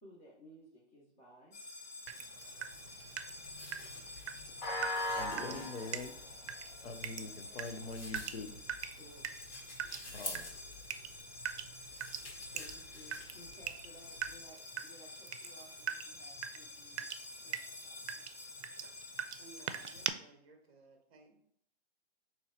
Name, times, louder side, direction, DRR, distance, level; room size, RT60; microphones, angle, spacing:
voice 1, 0.0-1.6 3.9-4.0 8.8-9.6 12.5-18.3, equal, 15° left, 0.5 m, -59 dB
sound 1, 1.5-20.1, left 2 dB, 40° left, 0.9 m, -46 dB
Water tap faucet / Drip, 2.1-20.1, right 9 dB, 85° right, 0.5 m, -44 dB
sound 2, 2.7-14.5, left 2 dB, 85° left, 1.8 m, -51 dB
voice 2, 5.2-6.1 6.8-8.6 10.1-10.4, left 3 dB, 70° left, 0.8 m, -44 dB
voice 3, 19.4-21.4, right 3 dB, 30° right, 0.7 m, -59 dB
3.8 x 3.1 x 4.3 m
hypercardioid pair, 170°, 33 cm